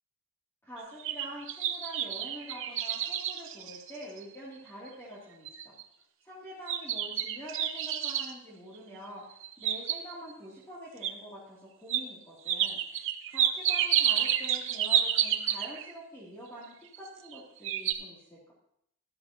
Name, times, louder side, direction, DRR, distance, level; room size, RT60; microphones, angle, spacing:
voice 1, 0.6-5.7 6.2-18.5, equal, 10° left, -8 dB, 2.5 m, -46 dB
sound 1, 0.8-4.3 4.9-5.0 5.4-5.8 6.7-8.3 9.3-10.3 11.0-11.1 11.9-12.0 12.5-15.9 16.9-17.4 17.6-17.9, right 10 dB, 65° right, 0.8 m, -29 dB
13.0 x 12.5 x 2.8 m, 0.73 s
head